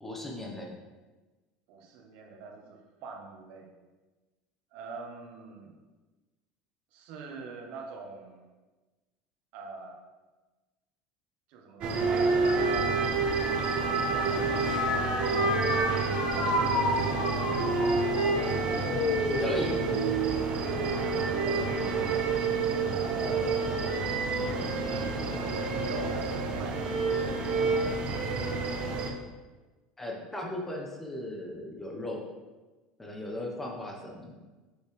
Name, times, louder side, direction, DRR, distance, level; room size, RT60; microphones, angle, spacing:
voice 1, 0.0-0.7 19.4-19.9 30.0-32.2 33.0-34.4, left 1 dB, 10° left, 0 dB, 1.1 m, -37 dB
voice 2, 1.7-3.7 4.7-5.7 6.9-8.5 9.5-10.0 11.5-13.1 14.1-15.8 16.1-17.5 21.1-21.7 22.9-27.0 30.1-30.2, right 4 dB, 65° right, 2 dB, 1.2 m, -43 dB
sound 1, 11.8-29.1, right 4 dB, 50° right, 1.0 m, -29 dB
sound 2, 12.0-21.6 22.1-22.6 23.6-24.0, left 1 dB, 70° left, 1.3 m, -33 dB
6.4 x 5.2 x 3.4 m, 1.2 s
supercardioid pair, 115°, 3 cm